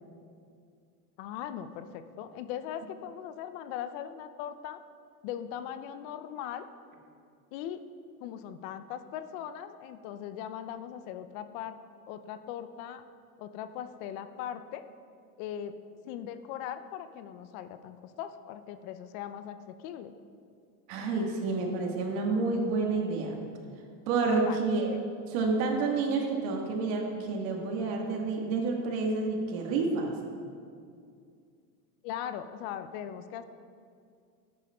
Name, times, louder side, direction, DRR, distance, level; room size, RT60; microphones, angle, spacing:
voice 1, 1.2-4.8 5.2-6.7 7.5-7.8 8.2-11.8 12.1-13.0 13.4-14.8 15.4-15.7 16.0-20.2 24.4-24.6 24.9-25.0 32.0-33.4, left 10 dB, 60° left, 11 dB, 0.7 m, -39 dB
voice 2, 20.9-23.4 24.1-24.9 25.3-30.1, right 3 dB, 65° right, 1 dB, 1.7 m, -29 dB
12.0 x 9.2 x 2.3 m, 2.3 s
hypercardioid pair, 100°, 47 cm